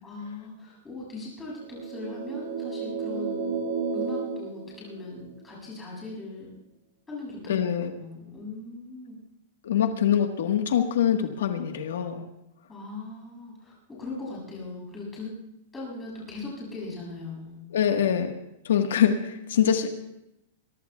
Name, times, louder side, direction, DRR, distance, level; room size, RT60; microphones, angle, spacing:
voice 1, 0.0-3.7 3.9-6.5 7.1-7.6 8.0-9.2 12.7-15.3 15.7-17.6, left 3 dB, 10° left, -5 dB, 7.3 m, -39 dB
sound 1, 1.6-5.4, right 5 dB, 55° right, 2.4 m, -32 dB
voice 2, 7.5-7.9 9.6-12.3 17.7-18.3 18.6-19.9, left 9 dB, 80° left, 5 dB, 1.4 m, -24 dB
23.5 x 23.0 x 2.3 m, 0.86 s
supercardioid pair, 180°, 0 cm